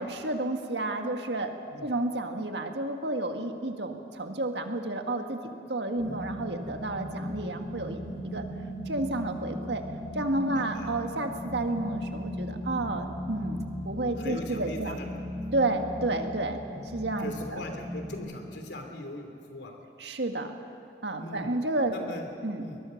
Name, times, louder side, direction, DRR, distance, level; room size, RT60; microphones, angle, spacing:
voice 1, 0.0-1.5 1.8-8.5 8.9-9.8 10.1-15.0 15.5-16.6 16.9-17.6 20.0-20.5 21.0-21.9 22.4-22.6, right 2 dB, 85° right, 5 dB, 1.8 m, -31 dB
sound 1, 6.0-18.2, equal, 45° right, 7.5 m, -38 dB
voice 2, 8.0-8.4 10.5-10.9 14.2-15.1 15.4-15.5 17.2-19.7 21.2-21.5 21.9-22.3 22.6-22.8, left 1 dB, 85° left, 4 dB, 3.1 m, -40 dB
22.0 x 21.0 x 6.5 m, 2.6 s
head